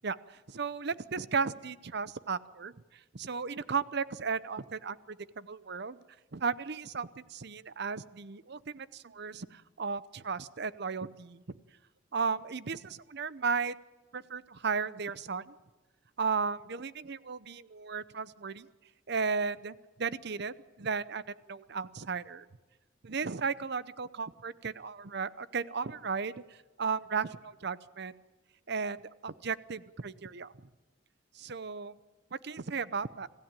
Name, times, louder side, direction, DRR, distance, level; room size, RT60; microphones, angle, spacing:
voice 1, 0.0-2.7 3.1-6.0 6.3-11.6 12.1-13.7 14.1-15.5 16.2-18.7 19.1-22.5 23.0-26.4 26.8-28.1 28.7-30.5 31.4-32.0 32.3-33.3, right 5 dB, 60° right, 16 dB, 0.8 m, -35 dB
26.0 x 15.5 x 8.9 m, 1.2 s
head